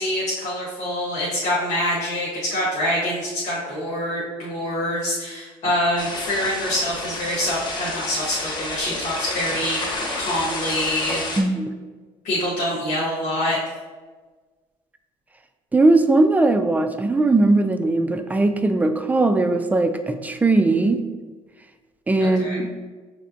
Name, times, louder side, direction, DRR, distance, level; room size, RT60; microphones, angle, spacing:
voice 1, 0.0-11.3 12.2-13.6 22.2-22.6, left 1 dB, 80° left, -7 dB, 1.4 m, -25 dB
sound 1, 6.0-11.4, left 2 dB, 40° left, 1.0 m, -30 dB
voice 2, 11.4-11.7 15.7-21.0 22.1-22.7, right 2 dB, 15° right, 7 dB, 0.4 m, -19 dB
6.1 x 3.3 x 2.6 m, 1.3 s
cardioid pair, 105°, 12 cm